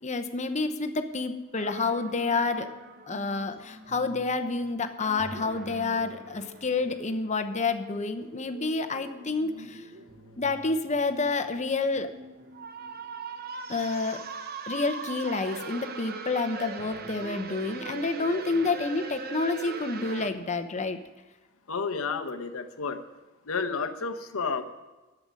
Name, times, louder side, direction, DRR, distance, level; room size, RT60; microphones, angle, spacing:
voice 1, 0.0-2.7 3.1-9.8 10.4-12.1 13.7-14.3 14.7-21.0, left 3 dB, 35° left, 8 dB, 0.9 m, -29 dB
sound 1, 1.6-20.3, right 4 dB, 45° right, 0.9 m, -42 dB
voice 2, 21.7-23.0 23.5-24.6, left 5 dB, 85° left, 6 dB, 0.9 m, -31 dB
11.5 x 7.9 x 9.7 m, 1.2 s
head